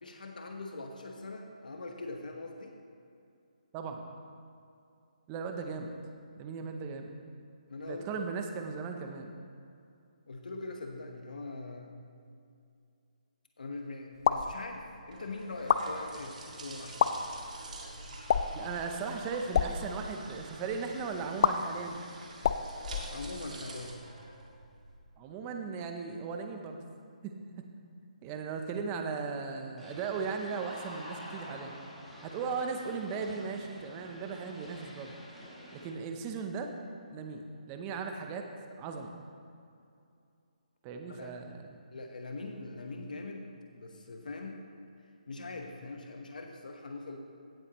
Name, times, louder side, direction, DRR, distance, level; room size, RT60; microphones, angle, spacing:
voice 1, 0.0-2.8 7.7-8.0 10.3-11.9 13.6-17.3 23.1-24.0 41.1-41.3 41.9-43.4 43.7-44.6 45.3-47.2, left 3 dB, 80° left, 2 dB, 1.1 m, -42 dB
voice 2, 3.7-4.0 5.3-5.9 6.4-7.1 7.9-9.3 18.5-22.0 25.2-26.9 27.2-27.3 28.2-31.7 32.2-35.2 35.7-36.7 37.1-38.5 38.8-39.2 40.8-41.6, right 5 dB, 15° right, 4 dB, 0.6 m, -37 dB
sound 1, 14.1-14.5 15.5-15.8 16.9-17.1 18.3-18.6 19.4-19.7 21.4-21.5 22.4-23.6, left 8 dB, 35° left, 0.3 m, -27 dB
sound 2, 14.6-25.0, right 2 dB, 65° right, 1.9 m, -47 dB
sound 3, 29.8-35.9, equal, 5° left, 1.2 m, -49 dB
16.5 x 7.6 x 3.0 m, 2.5 s
hypercardioid pair, 165°, 4 cm